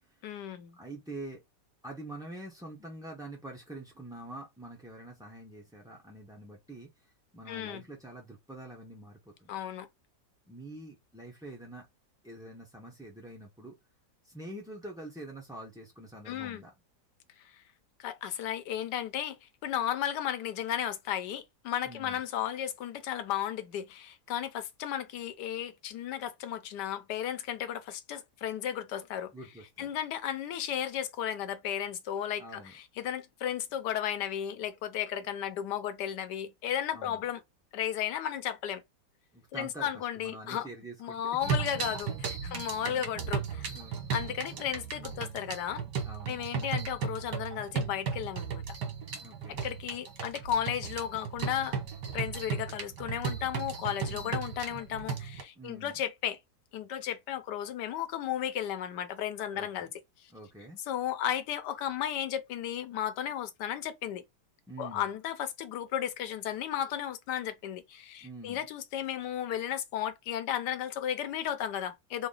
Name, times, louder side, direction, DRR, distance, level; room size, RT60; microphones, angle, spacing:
voice 1, 0.2-0.8 7.5-7.8 9.5-9.9 16.3-16.6 18.0-29.3 29.8-37.4 37.7-38.8 39.5-40.7 41.0-43.7 44.1-45.8 46.3-48.8 49.5-51.8 52.1-56.4 56.7-59.9 60.2-60.3 60.9-64.2 64.8-72.3, left 10 dB, 80° left, 1.3 m, -34 dB
voice 2, 0.8-1.4 1.8-6.9 7.3-9.5 10.5-11.9 12.2-13.8 14.2-16.7 21.8-22.2 29.3-29.9 32.4-32.7 36.9-37.2 39.3-41.2 41.6-41.7 42.4-43.3 43.7-44.2 46.0-46.5 49.2-49.6 54.1-54.4 55.6-56.0 59.5-59.9 60.3-60.8 64.7-65.0 68.2-68.6, right 1 dB, 5° right, 0.4 m, -46 dB
sound 1, 41.4-55.4, right 6 dB, 85° right, 1.7 m, -35 dB
3.8 x 2.1 x 3.8 m
omnidirectional pair, 1.8 m